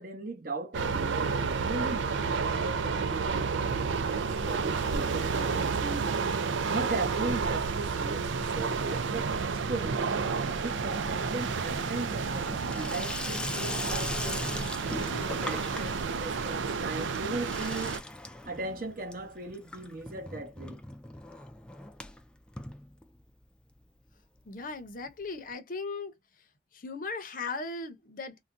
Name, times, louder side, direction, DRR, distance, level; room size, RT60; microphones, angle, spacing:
voice 1, 0.0-6.1 6.7-10.1 10.6-14.5 14.8-17.9 18.5-20.8, right 2 dB, 50° right, 1.0 m, -38 dB
sound 1, 0.7-18.0, right 5 dB, 85° right, 0.5 m, -31 dB
Water tap faucet / Sink (filling or washing), 6.3-7.1 7.3-7.9 8.2-23.5 23.8-23.9 24.1-24.2 24.4-24.5 25.5-25.6, left 1 dB, 5° left, 0.3 m, -41 dB
voice 2, 24.5-26.1 26.7-28.4, left 3 dB, 45° left, 0.7 m, -37 dB
3.7 x 2.2 x 2.5 m
head